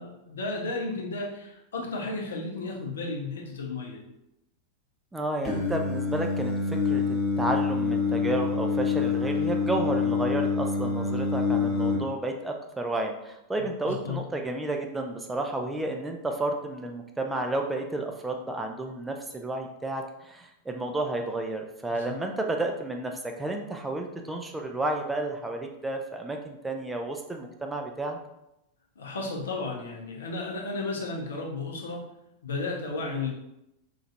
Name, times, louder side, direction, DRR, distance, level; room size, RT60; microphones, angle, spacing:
voice 1, 0.0-4.0 13.8-14.2 21.9-22.2 29.0-32.0 32.4-33.3, left 3 dB, 65° left, -1 dB, 0.6 m, -33 dB
voice 2, 5.1-7.0 7.4-28.2 33.0-33.3, right 2 dB, 10° right, 3 dB, 0.3 m, -31 dB
Singing, 5.4-12.0, left 5 dB, 20° left, 0.9 m, -26 dB
3.0 x 2.4 x 2.6 m, 0.86 s
figure-of-eight pair, 90°, 0 cm